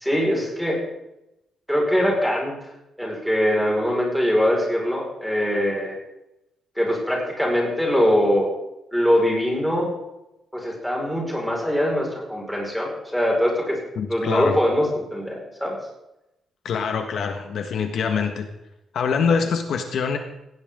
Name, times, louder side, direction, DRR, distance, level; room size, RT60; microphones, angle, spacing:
voice 1, 0.0-0.8 1.7-2.5 3.0-6.0 6.8-8.5 8.9-9.9 10.5-13.8 14.1-15.8, equal, ahead, -2 dB, 5.4 m, -22 dB
voice 2, 13.9-14.6 16.6-18.5 18.9-20.2, left 6 dB, 60° left, 5 dB, 1.7 m, -24 dB
18.0 x 17.5 x 3.9 m, 0.90 s
wide cardioid pair, 160°, 0 cm